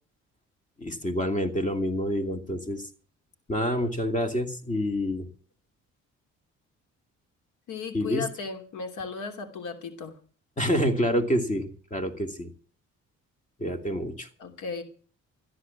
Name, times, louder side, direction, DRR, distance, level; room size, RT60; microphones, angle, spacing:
voice 1, 0.8-2.9 3.5-5.3 7.9-8.2 10.6-12.5 13.6-14.3, equal, 25° left, 7 dB, 2.9 m, -27 dB
voice 2, 7.7-10.2 14.4-14.8, left 5 dB, 80° left, 7 dB, 3.0 m, -35 dB
14.0 x 10.5 x 7.3 m, 0.43 s
cardioid pair, 90°, 30 cm